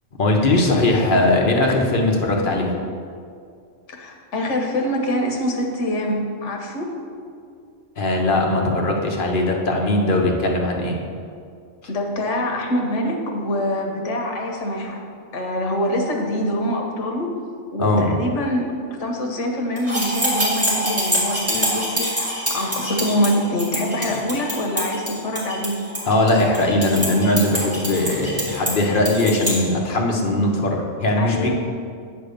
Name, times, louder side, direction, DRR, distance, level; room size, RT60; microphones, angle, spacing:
voice 1, 0.2-2.7 8.0-11.0 17.8-18.1 26.1-31.5, left 2 dB, 50° left, 0 dB, 1.0 m, -19 dB
voice 2, 3.9-6.9 11.9-15.0 15.3-17.3 17.7-18.7 19.0-25.8 31.2-31.5, left 1 dB, 75° left, 2 dB, 1.3 m, -24 dB
sound 1, 19.8-29.6, equal, 10° right, 1.8 m, -25 dB
8.7 x 3.4 x 6.6 m, 2.3 s
omnidirectional pair, 1.2 m